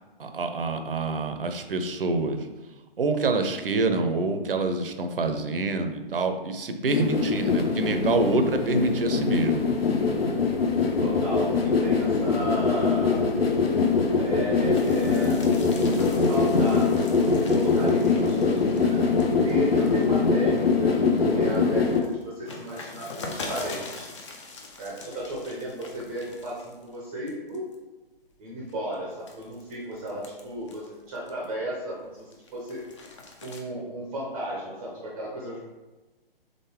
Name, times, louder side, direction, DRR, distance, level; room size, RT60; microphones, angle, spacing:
voice 1, 0.2-2.4 3.0-9.6, right 3 dB, 65° right, 7 dB, 0.6 m, -26 dB
sound 1, 6.9-22.0, left 4 dB, 80° left, 0.7 m, -23 dB
voice 2, 11.0-13.3 14.2-15.4 15.7-19.1 19.4-21.0 21.3-24.1 24.8-27.6 28.4-32.8 33.4-35.6, right 1 dB, 15° right, -4 dB, 0.6 m, -34 dB
sound 2, 14.7-20.6 21.1-27.0 27.3-27.7 28.3-31.6 32.0-33.6, left 3 dB, 30° left, 0.6 m, -43 dB
3.7 x 3.7 x 3.6 m, 1.2 s
figure-of-eight pair, 135°, 30 cm